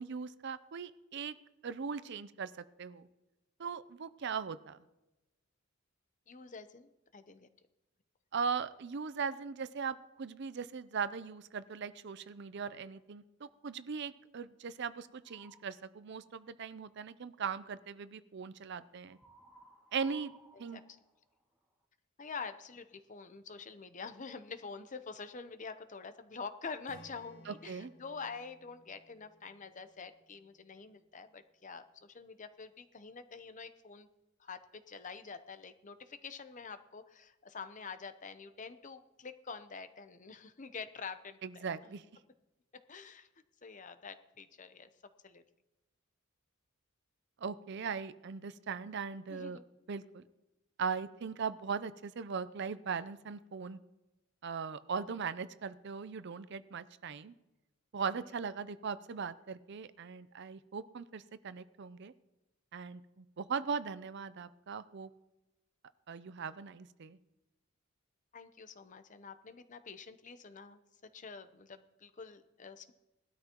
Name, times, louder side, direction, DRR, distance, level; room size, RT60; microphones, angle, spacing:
voice 1, 0.0-1.4 1.6-2.5 2.8-3.1 3.6-4.8 8.3-19.2 19.9-20.3 20.6-20.8 27.5-27.9 41.4-42.0 47.4-49.6 49.9-50.2 50.8-53.8 54.4-57.3 57.9-62.1 62.7-65.1 66.1-67.2, right 6 dB, 55° right, 14 dB, 0.5 m, -39 dB
voice 2, 6.3-7.5 20.7-20.8 22.2-34.1 34.4-41.7 42.9-43.3 43.6-44.9 45.2-45.4 49.3-49.6 68.3-70.8 71.1-72.9, left 5 dB, 35° left, 11 dB, 0.7 m, -47 dB
sound 1, 15.2-15.8 19.1-21.8, right 2 dB, 5° right, 2.0 m, -60 dB
Strum, 26.9-31.1, equal, 80° left, 3.1 m, -60 dB
19.0 x 12.5 x 3.0 m, 0.99 s
head